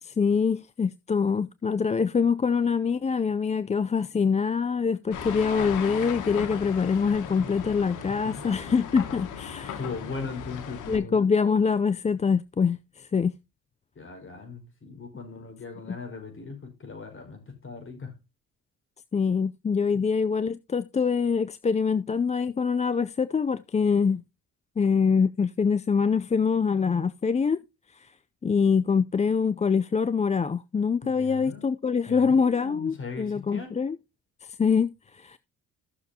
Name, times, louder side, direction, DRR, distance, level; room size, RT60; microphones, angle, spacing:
voice 1, 0.0-9.8 10.9-13.3 15.9-16.0 19.1-24.2 24.8-27.6 27.9-28.1 28.4-34.0 34.4-35.4, left 5 dB, 25° left, 0.5 m, -24 dB
sound 1, 5.1-11.0, left 7 dB, 85° left, 1.6 m, -37 dB
voice 2, 9.8-11.2 14.0-18.1 31.0-31.7 32.1-33.7, left 4 dB, 40° left, 5.3 m, -39 dB
16.0 x 6.5 x 2.8 m
cardioid pair, 90°, 30 cm